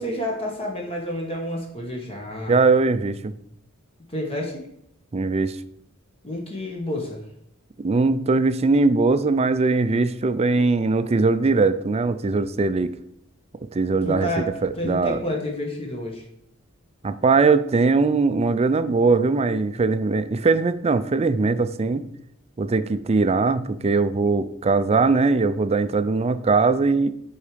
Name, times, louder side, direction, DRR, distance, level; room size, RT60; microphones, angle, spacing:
voice 1, 0.0-2.6 4.1-4.6 6.2-7.2 14.0-14.5 14.8-16.2, left 1 dB, 30° left, 0 dB, 1.5 m, -29 dB
voice 2, 2.5-3.3 5.1-5.6 7.8-12.9 13.7-15.2 17.0-22.0 22.6-27.1, right 3 dB, 30° right, 12 dB, 0.4 m, -20 dB
8.2 x 4.8 x 5.1 m, 0.72 s
head